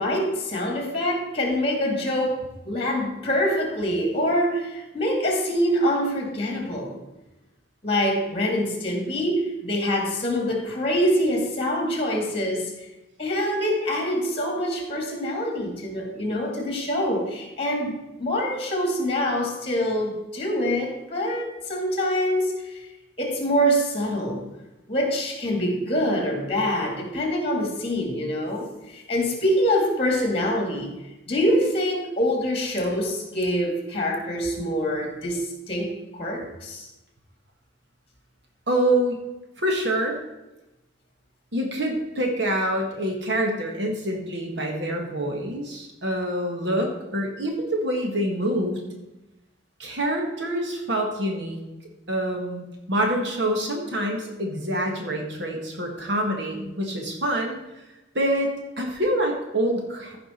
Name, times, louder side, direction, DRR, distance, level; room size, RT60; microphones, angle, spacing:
voice 1, 0.0-7.0 7.8-12.7 13.2-22.7 23.2-24.5 24.9-31.0 31.3-36.9, equal, 30° left, 2 dB, 2.3 m, -25 dB
voice 2, 38.7-39.2 39.6-40.2 41.5-49.0 49.8-51.6 52.1-57.6 58.2-58.5 58.8-60.2, right 1 dB, 60° right, 2 dB, 1.7 m, -26 dB
15.0 x 5.1 x 4.4 m, 0.99 s
head